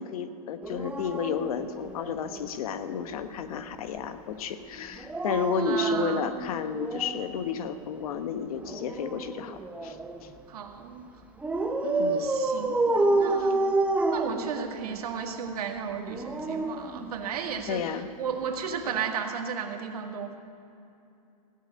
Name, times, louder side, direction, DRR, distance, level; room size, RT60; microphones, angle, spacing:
voice 1, 0.0-10.3 12.0-12.3 13.4-13.5 17.7-18.1, left 7 dB, 70° left, 10 dB, 1.1 m, -32 dB
Dog, 0.6-2.5 4.9-7.3 8.6-10.3 11.4-15.0 15.9-17.6 18.9-19.1, right 2 dB, 5° right, 0.9 m, -29 dB
voice 2, 5.6-6.3 10.5-11.0 11.8-13.7 14.1-17.8 18.2-20.3, right 6 dB, 80° right, 4 dB, 1.8 m, -34 dB
16.0 x 6.5 x 9.6 m, 2.7 s
hypercardioid pair, 135°, 19 cm